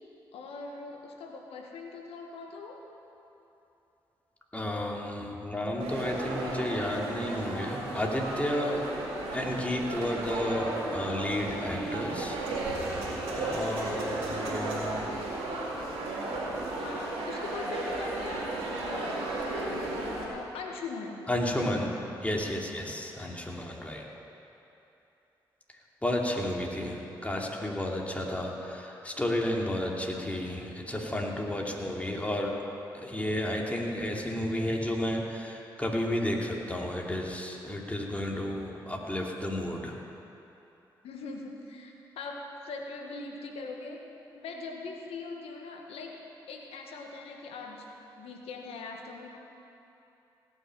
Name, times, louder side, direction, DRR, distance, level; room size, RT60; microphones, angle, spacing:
voice 1, 0.3-2.8 8.6-9.2 16.8-21.9 41.0-44.1 44.3-46.2 46.5-49.3, left 3 dB, 75° left, 2 dB, 1.6 m, -41 dB
voice 2, 4.5-8.8 9.3-12.4 13.3-15.1 21.3-21.9 22.2-24.0 26.0-32.6 33.0-40.0, left 1 dB, 15° left, -1 dB, 2.8 m, -32 dB
sound 1, 5.8-20.3, right 2 dB, 80° right, 2.5 m, -34 dB
17.0 x 6.5 x 9.0 m, 3.0 s
hypercardioid pair, 45°, 10 cm